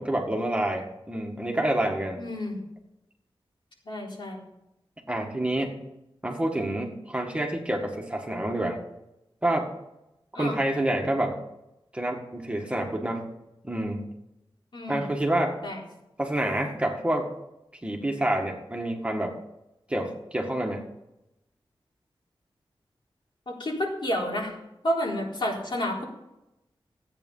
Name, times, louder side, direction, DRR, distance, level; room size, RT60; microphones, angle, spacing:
voice 1, 0.0-2.2 5.1-5.7 6.2-8.8 9.4-9.7 10.4-11.4 11.9-13.3 13.6-14.0 14.9-15.6 16.2-17.3 17.8-19.4 19.9-20.8, right 1 dB, 15° right, 1 dB, 1.9 m, -28 dB
voice 2, 2.2-2.6 3.9-4.4 10.3-10.6 14.7-15.0 15.6-15.8 23.5-24.5 24.8-26.0, left 1 dB, 60° left, -3 dB, 4.0 m, -30 dB
14.0 x 8.8 x 5.6 m, 0.90 s
wide cardioid pair, 95°, 9 cm